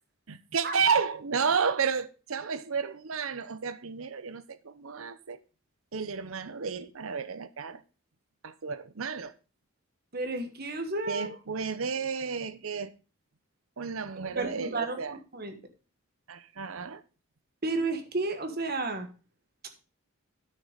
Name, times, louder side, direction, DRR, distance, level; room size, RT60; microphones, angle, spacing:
voice 1, 0.3-5.4 5.9-7.8 8.4-9.3 11.1-12.9 13.8-15.2 16.3-17.0, right 6 dB, 75° right, 14 dB, 0.8 m, -31 dB
voice 2, 10.1-11.3 14.3-15.6 17.6-19.1, right 2 dB, 45° right, 7 dB, 1.5 m, -32 dB
9.6 x 6.5 x 5.1 m, 0.34 s
head